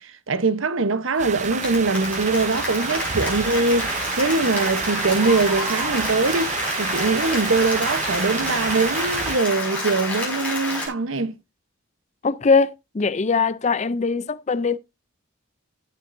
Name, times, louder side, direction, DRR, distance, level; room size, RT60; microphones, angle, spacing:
voice 1, 0.0-11.3, right 3 dB, 75° right, 0.9 m, -22 dB
Applause, 1.2-10.9, left 2 dB, 5° left, 5.6 m, -29 dB
sound 1, 1.2-9.4, right 6 dB, 35° right, 0.6 m, -29 dB
voice 2, 12.2-14.8, left 4 dB, 35° left, 0.4 m, -21 dB
16.0 x 7.2 x 2.6 m
head